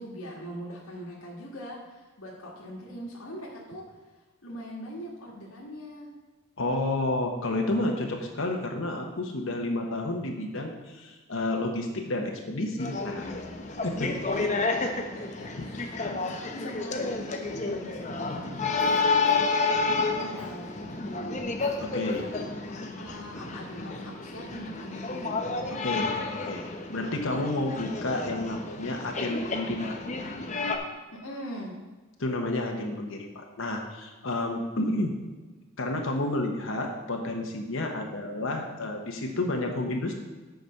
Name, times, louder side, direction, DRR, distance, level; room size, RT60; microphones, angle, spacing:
voice 1, 0.0-3.8 4.1-6.1 14.3-14.5 15.1-21.4 22.1-25.3 31.2-31.8, equal, 85° left, -4 dB, 1.9 m, -42 dB
voice 2, 6.6-13.4 13.8-14.1 15.6-15.7 21.8-22.2 25.7-26.1 26.5-29.9 32.2-35.1 35.8-40.2, left 2 dB, 65° left, 1 dB, 1.0 m, -30 dB
sound 1, 12.8-30.8, left 3 dB, 35° left, 0.8 m, -30 dB
Cough, 18.8-19.6 20.4-20.6 21.6-21.8 22.1-22.3, equal, 5° right, 1.3 m, -48 dB
8.0 x 5.2 x 6.5 m, 1.3 s
head